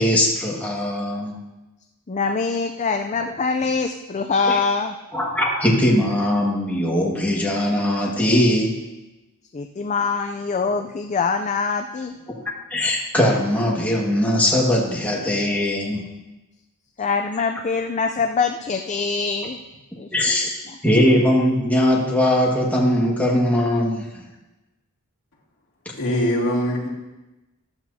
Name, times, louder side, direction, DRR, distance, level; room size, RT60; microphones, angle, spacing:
voice 1, 0.0-1.4 4.4-4.6 5.1-8.8 12.7-16.1 20.1-20.6 20.8-24.2, left 1 dB, 5° left, -3 dB, 1.8 m, -20 dB
voice 2, 2.1-5.0 9.5-12.1 17.0-19.6 20.0-20.1, left 4 dB, 30° left, 6 dB, 0.5 m, -24 dB
voice 3, 25.9-26.9, equal, 60° left, -3 dB, 2.6 m, -22 dB
15.0 x 12.0 x 2.8 m, 1.0 s
head